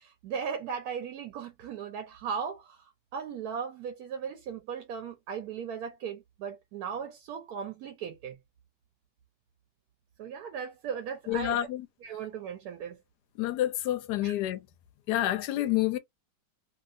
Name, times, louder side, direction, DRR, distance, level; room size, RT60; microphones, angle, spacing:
voice 1, 0.0-8.4 10.2-11.6 12.0-13.0 14.2-14.4, right 7 dB, 70° right, 1.0 m, -37 dB
voice 2, 11.3-11.9 13.4-14.6 15.1-16.0, left 14 dB, 75° left, 1.1 m, -28 dB
2.7 x 2.7 x 2.5 m
omnidirectional pair, 1.9 m